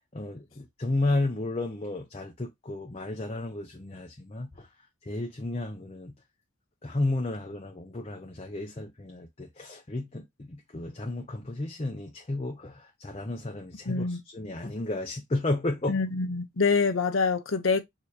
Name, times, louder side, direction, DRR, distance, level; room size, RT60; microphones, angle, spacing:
voice 1, 0.1-4.7 5.1-6.1 6.8-16.0, left 2 dB, 30° left, 0.6 m, -32 dB
voice 2, 13.9-14.2 15.9-17.8, left 4 dB, 85° left, 0.9 m, -25 dB
6.5 x 2.9 x 2.8 m
head